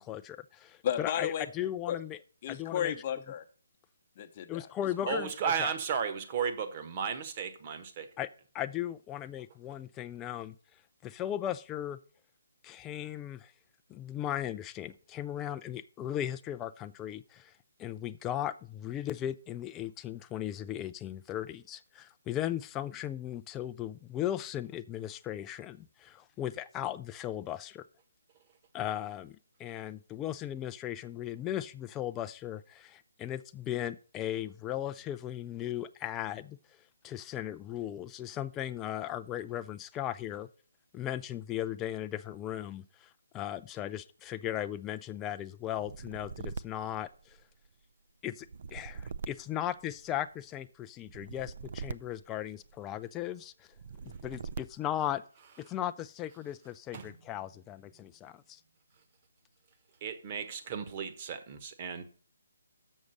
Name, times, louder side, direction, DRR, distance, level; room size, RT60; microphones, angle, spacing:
voice 1, 0.0-2.2 2.5-2.9 4.5-5.7 8.2-8.3 8.5-10.6 11.0-12.0 12.6-13.5 13.9-17.5 17.8-27.8 28.7-36.6 37.0-40.5 40.9-47.4 48.2-53.7 54.2-55.2 55.6-58.6, left 11 dB, 15° left, 0.4 m, -37 dB
voice 2, 0.8-1.5 1.9-2.0 2.4-3.4 4.2-4.7 5.0-5.2, left 10 dB, 35° left, 0.9 m, -33 dB
voice 3, 5.1-8.1 56.9-57.1 60.0-62.0, right 7 dB, 35° right, 1.2 m, -34 dB
sound 1, 45.7-47.7 48.4-50.3 51.1-53.0 53.7-55.1, right 5 dB, 55° right, 0.4 m, -43 dB
7.0 x 6.4 x 6.5 m
figure-of-eight pair, 145°, 0 cm